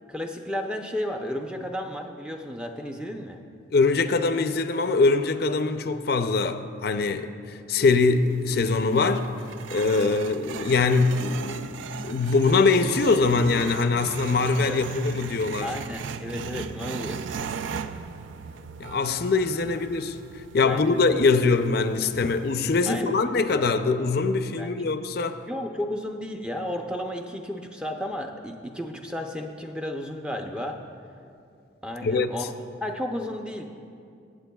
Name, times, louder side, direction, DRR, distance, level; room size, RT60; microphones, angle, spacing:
voice 1, 0.1-3.4 10.0-10.1 14.6-14.8 15.6-17.5 19.7-19.8 20.6-21.0 22.9-23.1 23.5-23.6 24.6-24.7 25.5-30.8 31.8-32.5 32.8-33.6, left 1 dB, 5° right, 0.5 m, -33 dB
voice 2, 3.7-9.3 9.7-15.7 18.8-25.4 32.0-32.3, left 4 dB, 50° left, 0.4 m, -23 dB
sound 1, 8.2-23.0, right 6 dB, 75° right, 0.4 m, -38 dB
24.0 x 8.0 x 2.3 m
head